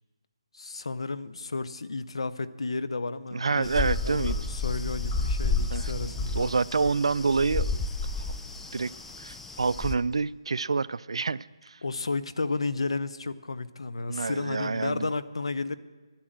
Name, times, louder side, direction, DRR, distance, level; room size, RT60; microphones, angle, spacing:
voice 1, 0.5-3.7 4.0-6.5 11.8-15.8, left 3 dB, 75° left, 15 dB, 0.7 m, -32 dB
sound 1, 3.3-3.4 3.6-10.2, left 1 dB, 25° left, 5.2 m, -55 dB
voice 2, 3.3-4.4 5.7-7.9 8.1-8.3 8.7-8.9 9.2-11.8 14.1-15.1, right 4 dB, 75° right, 19 dB, 0.4 m, -28 dB
sound 2, 3.6-9.9, left 3 dB, 5° left, 0.4 m, -31 dB
11.5 x 10.0 x 7.8 m, 1.3 s
figure-of-eight pair, 160°, 3 cm